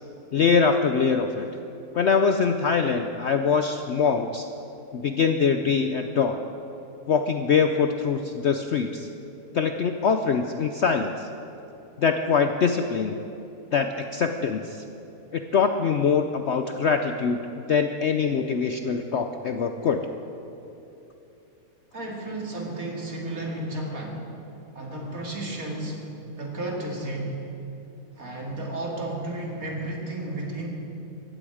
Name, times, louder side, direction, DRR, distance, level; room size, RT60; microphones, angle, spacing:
voice 1, 0.3-1.5 1.9-4.5 4.9-6.4 7.1-9.1 9.5-11.3 12.0-13.2 13.7-14.8 15.3-17.4 17.7-20.1, left 5 dB, 60° left, 6 dB, 0.7 m, -23 dB
voice 2, 21.9-24.3 24.7-26.0 26.4-27.4 28.2-30.7, right 1 dB, 55° right, -1 dB, 3.0 m, -32 dB
19.0 x 15.0 x 5.0 m, 2.9 s
omnidirectional pair, 1.7 m